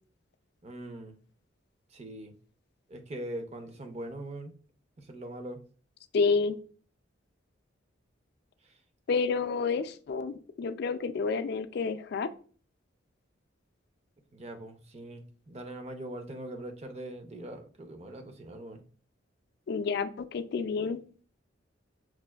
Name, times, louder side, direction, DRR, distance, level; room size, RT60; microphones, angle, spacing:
voice 1, 0.6-1.2 1.9-2.3 2.9-4.5 5.0-5.6 8.6-8.8 14.3-18.8, right 1 dB, 35° right, 0.5 m, -42 dB
voice 2, 6.1-6.6 9.1-12.3 19.7-21.0, left 4 dB, 55° left, 0.3 m, -29 dB
5.9 x 2.5 x 2.3 m
head